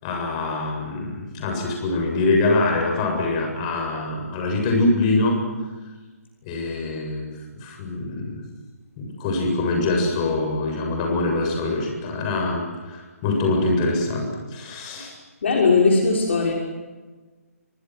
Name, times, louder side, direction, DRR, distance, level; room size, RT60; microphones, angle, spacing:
voice 1, 0.0-5.4 6.4-7.3 7.6-8.4 9.0-15.1, left 2 dB, 25° left, 2 dB, 7.8 m, -24 dB
voice 2, 15.4-16.5, left 4 dB, 50° left, -1 dB, 6.2 m, -18 dB
29.5 x 26.0 x 6.3 m, 1.3 s
figure-of-eight pair, 140°, 8 cm